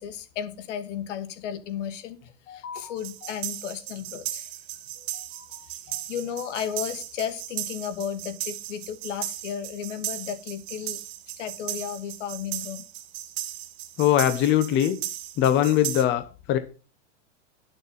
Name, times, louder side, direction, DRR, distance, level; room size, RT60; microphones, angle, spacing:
voice 1, 0.0-4.5 5.0-11.0 11.4-12.8, left 9 dB, 75° left, 9 dB, 2.7 m, -34 dB
sound 1, 3.0-16.0, right 13 dB, 55° right, 1.8 m, -36 dB
voice 2, 14.0-15.0 15.4-16.2 16.5-16.6, left 11 dB, 30° left, 11 dB, 1.0 m, -21 dB
11.5 x 7.0 x 5.5 m, 0.34 s
supercardioid pair, 145°, 37 cm